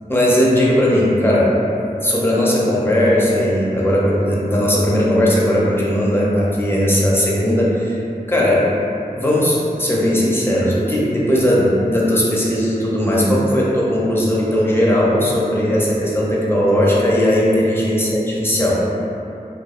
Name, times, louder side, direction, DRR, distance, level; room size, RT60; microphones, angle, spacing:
voice 1, 0.1-1.6 2.0-8.0 8.3-8.7 9.2-18.8, equal, 15° left, -6 dB, 0.5 m, -17 dB
2.7 x 2.3 x 2.3 m, 2.7 s
wide cardioid pair, 50°, 15 cm